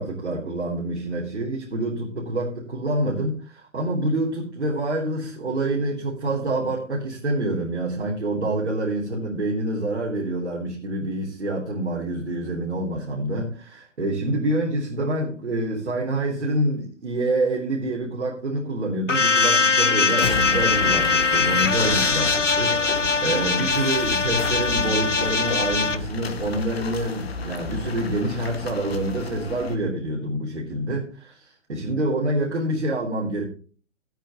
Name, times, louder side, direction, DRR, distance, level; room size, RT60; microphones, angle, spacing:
voice 1, 0.0-33.4, right 1 dB, 65° right, -3 dB, 3.8 m, -27 dB
sound 1, 19.1-26.0, left 4 dB, 85° left, 1.0 m, -21 dB
sound 2, 19.8-29.8, left 4 dB, 55° left, 2.0 m, -32 dB
17.0 x 9.0 x 3.1 m, 0.40 s
figure-of-eight pair, 125°, 36 cm